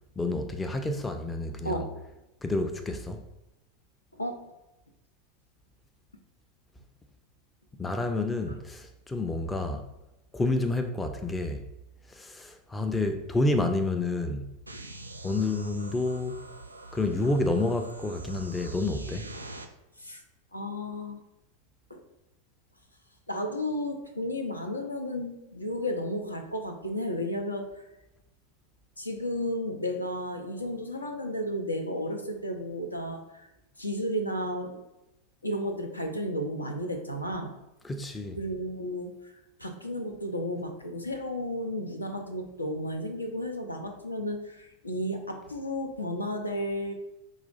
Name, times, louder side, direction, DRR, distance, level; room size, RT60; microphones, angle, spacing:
voice 1, 0.2-1.8 2.4-3.2 7.8-9.9 10.3-11.6 12.1-14.5 15.2-16.4 16.9-19.3 37.8-38.4, left 2 dB, 10° left, 0.4 m, -29 dB
sound 1, 14.7-19.7, right 2 dB, 85° right, 0.4 m, -44 dB
voice 2, 20.5-21.2 21.9-22.0 23.3-27.9 29.0-33.5 33.8-34.8 35.4-37.6 38.4-46.9, equal, 85° left, 0.5 m, -33 dB
4.8 x 2.4 x 4.0 m
figure-of-eight pair, 90°, 0 cm